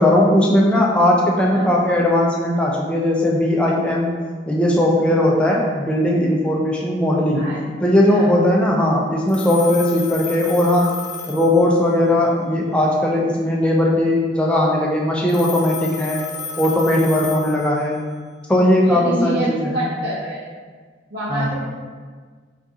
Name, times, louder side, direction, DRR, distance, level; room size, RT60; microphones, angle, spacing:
voice 1, 0.0-4.1 4.5-7.4 7.8-10.9 11.3-16.2 16.6-18.0 18.5-19.8 21.3-21.5, left 1 dB, 5° left, -3 dB, 0.3 m, -18 dB
Telephone, 9.3-12.1 15.3-18.1, left 5 dB, 85° left, 0.5 m, -33 dB
voice 2, 18.8-20.4 21.1-21.5, right 1 dB, 60° right, -9 dB, 0.8 m, -26 dB
2.7 x 2.4 x 3.5 m, 1.5 s
head